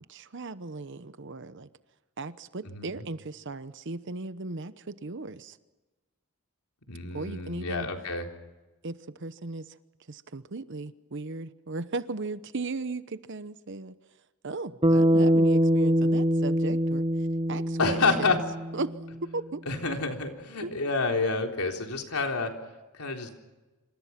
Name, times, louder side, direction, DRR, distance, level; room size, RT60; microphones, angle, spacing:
voice 1, 0.1-1.7 2.2-5.6 7.1-7.9 8.8-9.8 10.1-13.9 14.4-18.4 18.7-18.9 19.2-19.6 20.6-20.7, right 3 dB, 55° right, 13 dB, 0.9 m, -36 dB
voice 2, 2.6-3.0 6.9-8.3 17.8-18.4 19.7-22.5 23.0-23.3, left 3 dB, 85° left, 3 dB, 3.8 m, -28 dB
Bass guitar, 14.8-19.2, equal, 25° right, 1.1 m, -24 dB
27.5 x 26.5 x 5.9 m, 1.2 s
head